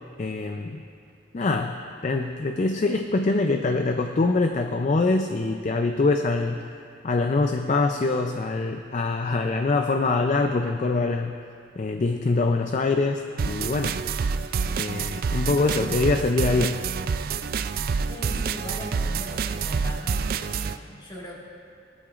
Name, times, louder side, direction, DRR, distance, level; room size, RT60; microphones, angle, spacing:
voice 1, 0.2-0.8 1.3-6.6 7.0-11.4 11.8-14.0 14.8-16.8, left 3 dB, 40° left, 5 dB, 0.4 m, -24 dB
sound 1, 13.4-20.8, right 5 dB, 50° right, 0.3 m, -27 dB
voice 2, 18.1-21.4, equal, 25° left, -4 dB, 1.9 m, -39 dB
19.5 x 13.5 x 2.5 m, 2.4 s
head